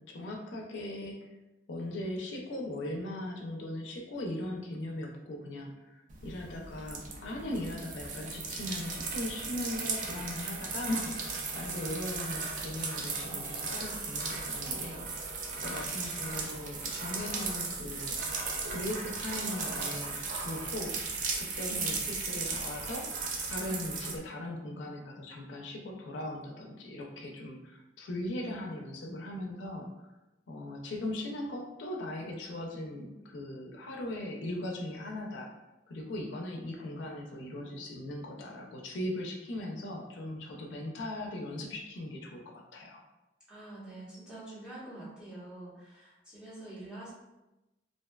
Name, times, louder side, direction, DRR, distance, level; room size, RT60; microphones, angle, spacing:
voice 1, 0.1-1.3 1.7-15.3 15.6-18.3 18.7-23.0 23.4-29.9 30.5-35.5 35.9-43.0, left 1 dB, 80° left, 1 dB, 0.4 m, -39 dB
Peeing on Carpet, 6.1-24.1, right 4 dB, 45° right, 0.3 m, -36 dB
voice 2, 15.5-16.1 43.5-47.1, right 1 dB, 5° right, -10 dB, 0.8 m, -46 dB
2.5 x 2.2 x 2.2 m, 0.99 s
head